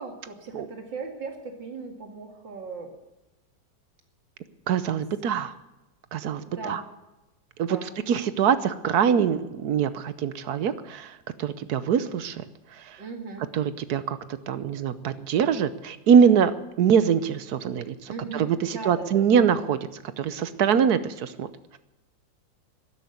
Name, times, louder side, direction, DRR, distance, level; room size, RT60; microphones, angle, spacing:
voice 1, 0.0-2.9 6.4-6.8 7.6-7.9 13.0-13.4 18.1-19.4, right 4 dB, 85° right, 4 dB, 2.9 m, -38 dB
voice 2, 4.7-5.5 6.1-6.8 7.6-12.4 12.7-13.0 13.5-14.2 14.5-19.8 20.2-21.8, right 7 dB, 65° right, 14 dB, 1.3 m, -24 dB
13.0 x 11.0 x 9.4 m, 1.0 s
omnidirectional pair, 2.0 m